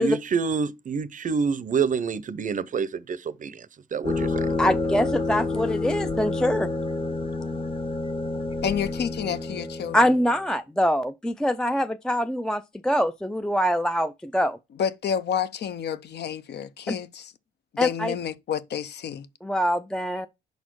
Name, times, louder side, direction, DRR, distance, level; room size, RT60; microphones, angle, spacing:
voice 1, 0.0-3.7 3.9-4.5, right 5 dB, 40° right, 0.6 m, -27 dB
sound 1, 4.0-10.3, left 2 dB, 25° left, 0.9 m, -28 dB
voice 2, 4.6-6.7 9.9-14.6 16.9-17.0 17.8-18.1 19.4-20.3, equal, 5° left, 0.3 m, -24 dB
voice 3, 8.6-10.1 14.7-17.3 17.7-19.3, left 8 dB, 60° left, 0.6 m, -29 dB
5.1 x 4.2 x 4.5 m
cardioid pair, 90°, 20 cm